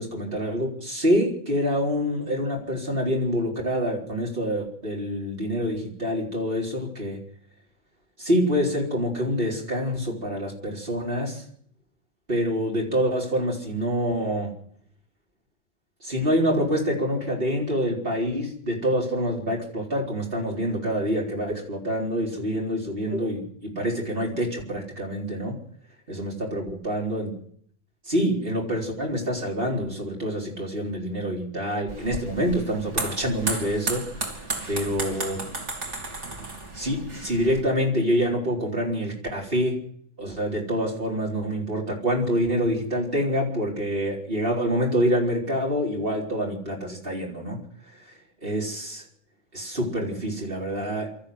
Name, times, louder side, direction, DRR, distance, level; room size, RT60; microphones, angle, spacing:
voice 1, 0.0-7.2 8.2-11.4 12.3-14.5 16.0-25.6 26.1-27.3 28.1-35.4 36.7-39.8 40.2-47.6 48.4-49.1 49.5-51.1, equal, 50° right, -1 dB, 4.5 m, -26 dB
sound 1, 31.9-37.6, right 2 dB, 70° right, 3.4 m, -33 dB
24.0 x 13.5 x 7.9 m, 0.65 s
omnidirectional pair, 1.3 m